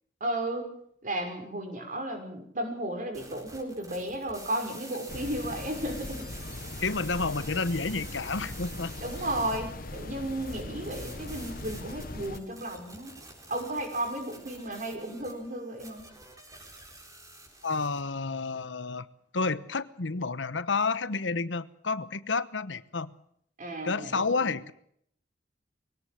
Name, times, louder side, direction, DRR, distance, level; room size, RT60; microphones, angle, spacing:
voice 1, 0.2-0.7 1.0-6.3 9.0-13.1 13.5-16.1 23.6-24.5, right 1 dB, 45° right, 5 dB, 5.9 m, -34 dB
sound 1, 3.1-18.0, right 2 dB, 20° right, 4.5 m, -48 dB
sound 2, 5.1-12.4, left 2 dB, 50° left, 1.3 m, -40 dB
voice 2, 6.8-9.0 17.6-19.0 19.3-23.1 23.8-24.7, left 4 dB, 85° left, 15 dB, 1.1 m, -30 dB
23.0 x 18.0 x 7.8 m, 0.69 s
head